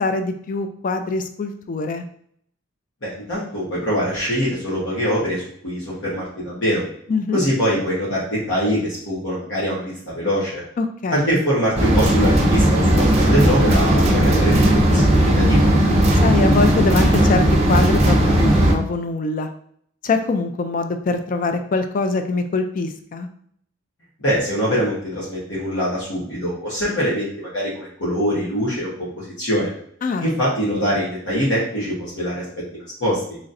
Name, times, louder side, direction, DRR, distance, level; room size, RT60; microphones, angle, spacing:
voice 1, 0.0-2.0 7.1-7.4 10.8-11.4 16.2-19.5 20.0-23.3 30.0-30.3, left 3 dB, 45° left, 7 dB, 0.3 m, -23 dB
voice 2, 3.0-6.8 7.3-10.6 11.1-14.5 14.9-15.7 24.2-28.9 29.2-29.7 30.2-32.4 32.7-33.2, equal, 65° left, -8 dB, 1.2 m, -23 dB
sound 1, 11.8-18.7, right 1 dB, 35° right, 0.6 m, -16 dB
4.0 x 3.0 x 2.5 m, 0.64 s
head